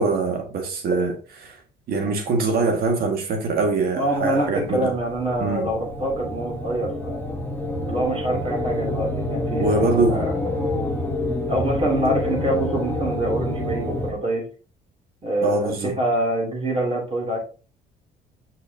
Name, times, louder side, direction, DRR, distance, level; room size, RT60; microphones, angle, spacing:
voice 1, 0.0-1.6 1.9-4.9 5.4-5.7 9.6-10.3 15.4-15.9, right 3 dB, 65° right, 1.8 m, -23 dB
voice 2, 4.0-7.2 7.9-10.3 11.5-14.4 15.2-17.4, right 1 dB, 35° right, 2.7 m, -25 dB
sound 1, 4.2-14.1, left 1 dB, 15° left, 1.1 m, -28 dB
6.2 x 5.7 x 2.7 m
cardioid pair, 110°, 17 cm